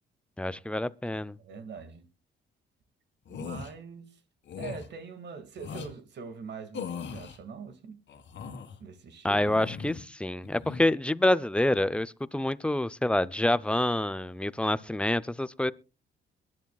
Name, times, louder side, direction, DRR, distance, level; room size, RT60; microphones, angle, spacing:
voice 1, 0.4-1.4 9.2-15.7, left 1 dB, 5° left, 0.6 m, -27 dB
voice 2, 1.1-2.1 3.3-4.2 4.6-8.0 8.8-9.4, right 5 dB, 60° right, 2.1 m, -43 dB
sound 1, 3.3-3.7 4.5-4.9 5.6-5.9 6.7-7.4 8.1-8.8 9.4-10.1 10.4-10.8, left 6 dB, 65° left, 1.9 m, -39 dB
22.5 x 11.0 x 2.3 m
cardioid pair, 90°, 20 cm